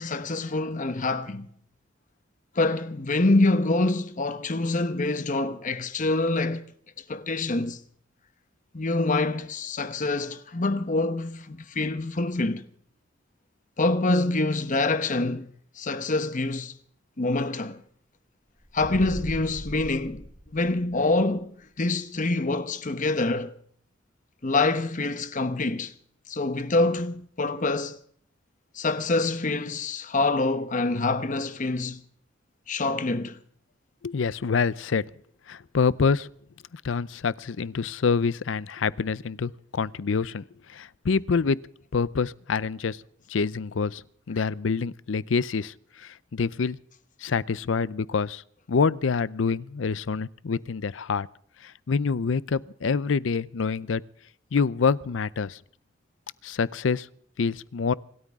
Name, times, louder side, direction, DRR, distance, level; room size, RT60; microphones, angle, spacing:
voice 1, 0.0-1.5 2.5-6.6 7.1-7.8 8.7-12.6 13.8-15.5 15.8-16.7 17.2-17.8 18.7-20.3 20.5-21.5 21.8-23.5 24.4-25.9 26.3-28.0 28.7-32.0 32.7-33.4, left 2 dB, 45° left, 1.1 m, -26 dB
sound 1, 18.6-21.1, equal, 35° right, 7.8 m, -39 dB
voice 2, 34.0-35.0 35.5-36.3 36.7-40.4 40.7-41.6 41.9-43.0 43.3-44.0 44.3-46.8 47.2-48.4 48.7-51.3 51.6-54.0 54.5-55.6 56.4-57.1 57.4-57.9, left 5 dB, 85° left, 0.5 m, -26 dB
26.5 x 13.0 x 3.6 m
head